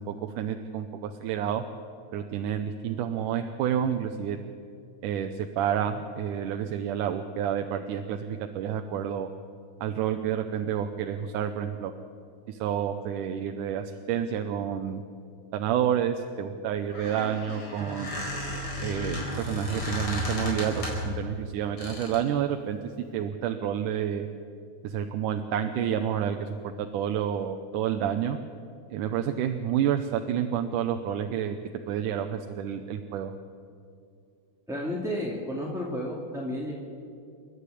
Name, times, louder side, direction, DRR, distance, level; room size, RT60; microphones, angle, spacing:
voice 1, 0.0-1.6 2.1-4.4 5.0-9.3 9.8-11.9 12.5-15.0 15.5-18.2 18.8-22.8 23.1-24.3 24.8-26.5 26.8-28.4 28.9-31.6 31.9-33.3, right 9 dB, 85° right, 6 dB, 2.3 m, -29 dB
Squeak, 16.8-21.2 21.8-22.3, left 1 dB, 45° left, 5.4 m, -33 dB
voice 2, 34.7-36.7, equal, ahead, -5 dB, 2.1 m, -32 dB
29.5 x 12.0 x 8.4 m, 2.5 s
omnidirectional pair, 3.5 m